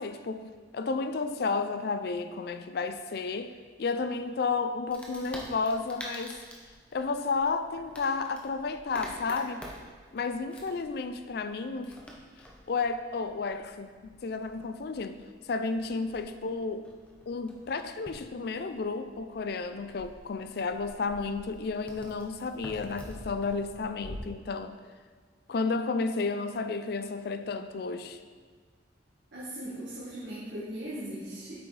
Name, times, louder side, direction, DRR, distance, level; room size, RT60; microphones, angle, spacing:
voice 1, 0.0-3.5 3.8-6.4 6.9-9.7 10.1-12.0 12.7-15.2 15.5-16.9 17.3-24.7 25.5-28.2, left 4 dB, 55° left, 0.4 m, -32 dB
Wood, 4.9-24.2, equal, 5° left, 0.8 m, -48 dB
voice 2, 29.3-31.5, right 1 dB, 70° right, 1.5 m, -38 dB
8.2 x 5.9 x 3.3 m
head